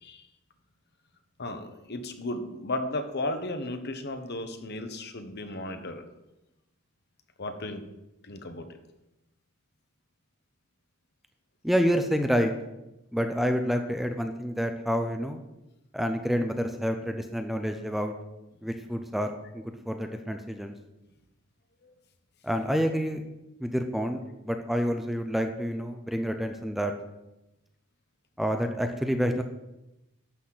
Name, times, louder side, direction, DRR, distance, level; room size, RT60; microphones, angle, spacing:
voice 1, 1.4-6.0 7.4-7.8 8.2-8.7 21.8-21.9, left 2 dB, 50° left, 7 dB, 1.1 m, -35 dB
voice 2, 11.6-12.5 13.1-15.4 15.9-18.1 18.6-20.7 22.4-23.2 23.6-24.2 24.5-26.9 28.4-29.4, equal, ahead, 5 dB, 0.6 m, -28 dB
11.5 x 4.3 x 7.7 m, 0.94 s
head